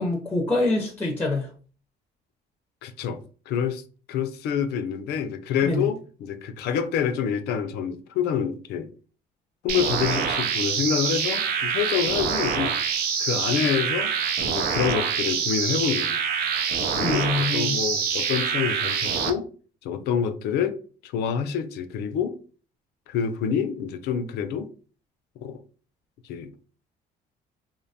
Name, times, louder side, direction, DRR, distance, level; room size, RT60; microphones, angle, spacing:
voice 1, 0.0-1.5 5.6-5.9 17.0-17.8, left 2 dB, 10° left, 0.5 m, -25 dB
voice 2, 2.8-3.2 3.5-3.8 4.1-8.9 9.6-12.8 13.2-14.1 14.4-16.2 16.8-19.5 19.8-20.8 21.0-22.4 23.1-24.7 25.4-25.6 26.3-26.5, left 7 dB, 75° left, 0.4 m, -27 dB
sound 1, 9.7-19.3, right 6 dB, 60° right, 0.5 m, -25 dB
2.6 x 2.2 x 2.6 m
cardioid pair, 110°, 17 cm